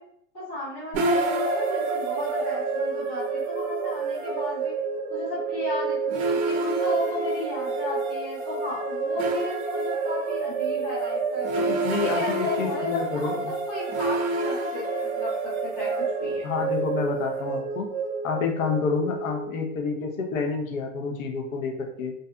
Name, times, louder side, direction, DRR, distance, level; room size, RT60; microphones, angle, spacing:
voice 1, 0.3-4.7 5.1-11.5 12.0-16.4, left 2 dB, 10° left, -13 dB, 0.4 m, -35 dB
sound 1, 0.9-20.1, right 3 dB, 75° right, 0.6 m, -28 dB
voice 2, 11.6-13.4 16.4-17.9 18.2-22.1, left 5 dB, 75° left, 3 dB, 0.7 m, -28 dB
2.7 x 2.3 x 2.3 m, 0.69 s
supercardioid pair, 170°, 41 cm